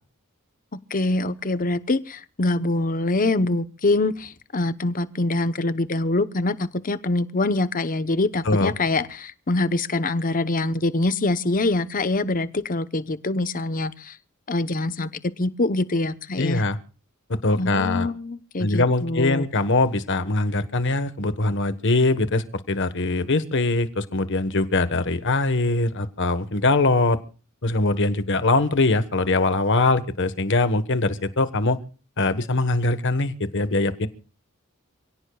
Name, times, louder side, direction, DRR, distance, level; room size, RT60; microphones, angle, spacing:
voice 1, 0.9-14.2 14.5-15.1 15.4-16.6 17.5-19.5, left 2 dB, 40° left, 13 dB, 0.9 m, -24 dB
voice 2, 16.4-16.8 17.4-18.1 18.6-27.2 27.6-31.8 32.2-34.1, left 2 dB, 60° left, 12 dB, 1.3 m, -22 dB
28.0 x 17.0 x 2.4 m, 0.37 s
head